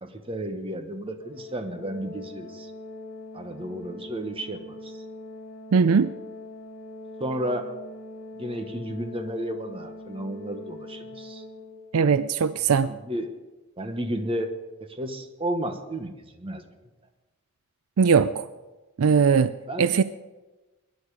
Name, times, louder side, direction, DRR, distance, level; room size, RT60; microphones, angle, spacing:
voice 1, 0.0-2.7 3.3-5.0 7.2-7.7 8.4-11.4 12.9-13.3 13.8-16.6 19.7-19.9, right 1 dB, 25° right, 7 dB, 1.2 m, -32 dB
Organ, 1.2-12.1, left 2 dB, 40° left, 4.6 m, -42 dB
voice 2, 5.7-6.1 11.9-12.9 18.0-18.5 19.0-20.0, right 6 dB, 70° right, 14 dB, 0.4 m, -20 dB
22.0 x 10.5 x 4.9 m, 1.2 s
head